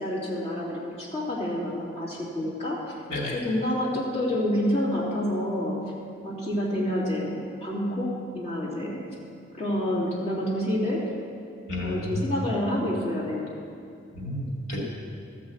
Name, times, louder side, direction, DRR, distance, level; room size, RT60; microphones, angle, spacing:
voice 1, 0.0-2.8 3.3-5.8 6.2-8.1 8.3-9.0 9.5-11.0 11.8-13.6, left 1 dB, 35° left, -6 dB, 2.6 m, -28 dB
voice 2, 11.7-12.3 14.1-14.8, left 1 dB, 85° left, -3 dB, 2.1 m, -31 dB
13.0 x 5.6 x 8.1 m, 2.4 s
head